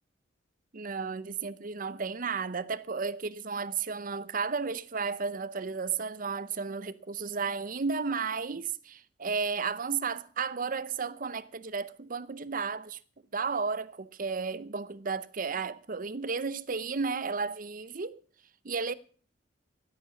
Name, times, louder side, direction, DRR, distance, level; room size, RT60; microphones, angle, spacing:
voice 1, 0.7-13.0 13.3-18.2 18.6-18.9, right 5 dB, 50° right, 0.7 m, -33 dB
16.0 x 8.5 x 6.9 m
head